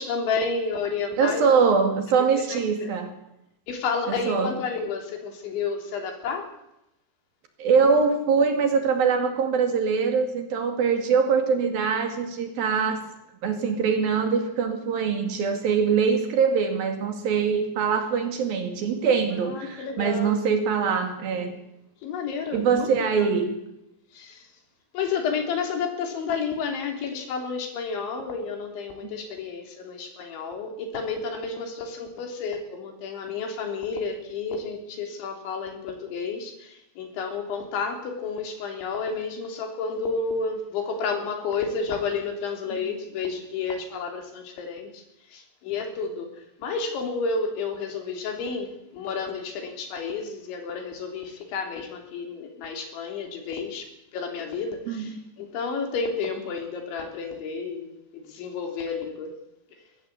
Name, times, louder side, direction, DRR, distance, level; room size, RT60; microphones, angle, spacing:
voice 1, 0.0-1.5 2.4-2.9 3.7-6.5 19.3-20.4 22.0-23.3 24.1-24.4 24.9-45.0 45.3-46.3 46.6-53.9 54.1-59.3, left 5 dB, 85° left, 4 dB, 5.8 m, -31 dB
voice 2, 1.2-3.1 4.3-4.5 7.6-13.0 13.4-21.5 22.5-23.6 29.0-29.1 42.7-42.8 54.9-55.2, right 5 dB, 60° right, 6 dB, 3.8 m, -23 dB
22.5 x 16.0 x 8.4 m, 0.84 s
omnidirectional pair, 5.2 m